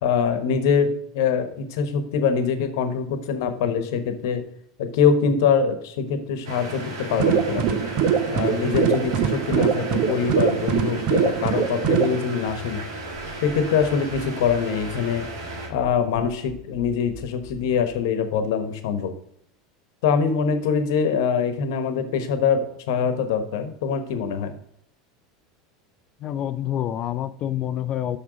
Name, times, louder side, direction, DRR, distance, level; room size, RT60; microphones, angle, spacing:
voice 1, 0.0-4.4 4.8-7.8 8.3-12.8 13.4-15.3 15.7-19.1 20.0-24.6, left 6 dB, 65° left, 9 dB, 1.1 m, -24 dB
sound 1, 6.4-15.7, right 1 dB, 75° right, 1.8 m, -35 dB
sound 2, 7.1-12.2, right 8 dB, 50° right, 0.7 m, -22 dB
sound 3, 12.5-17.9, right 1 dB, 10° right, 2.1 m, -44 dB
voice 2, 26.2-28.2, left 11 dB, 45° left, 12 dB, 0.4 m, -27 dB
6.1 x 6.1 x 5.0 m, 0.70 s
hypercardioid pair, 80°, 2 cm